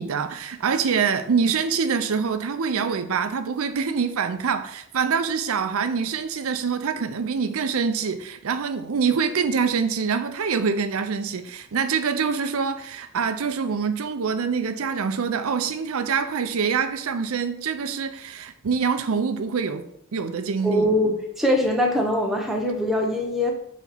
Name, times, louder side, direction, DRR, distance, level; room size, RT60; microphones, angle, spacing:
voice 1, 0.0-19.8 20.1-20.9, right 6 dB, 70° right, 9 dB, 0.5 m, -25 dB
voice 2, 20.6-23.5, left 1 dB, ahead, 0 dB, 0.8 m, -22 dB
5.8 x 4.0 x 4.5 m, 0.71 s
head